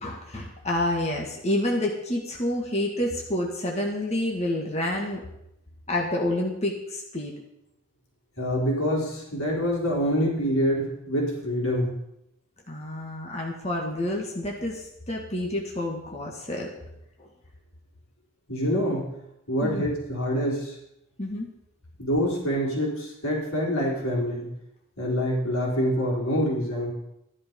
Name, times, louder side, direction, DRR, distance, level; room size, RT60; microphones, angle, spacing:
voice 1, 0.0-5.2 5.9-7.3 12.7-16.7 17.2-17.3 19.6-19.9 21.2-21.5, left 1 dB, 30° left, -1 dB, 2.0 m, -28 dB
voice 2, 8.4-11.9 18.5-19.1 19.5-20.7 22.0-24.5 25.0-26.9, equal, 75° left, -3 dB, 4.3 m, -26 dB
14.5 x 11.0 x 5.4 m, 0.82 s
head